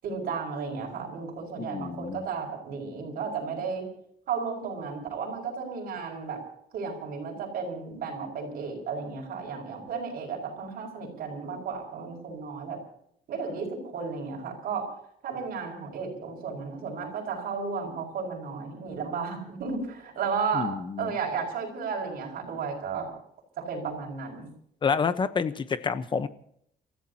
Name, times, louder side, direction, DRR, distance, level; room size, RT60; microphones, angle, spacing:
voice 1, 0.0-3.9 4.3-6.4 6.7-12.8 13.3-14.9 15.2-20.7 21.0-23.1 23.6-24.5, right 5 dB, 60° right, 0 dB, 6.5 m, -33 dB
voice 2, 1.6-2.2 20.5-21.2 24.8-26.3, left 5 dB, 30° left, 12 dB, 1.0 m, -28 dB
30.0 x 15.0 x 2.9 m, 0.69 s
cardioid pair, 165°, 16 cm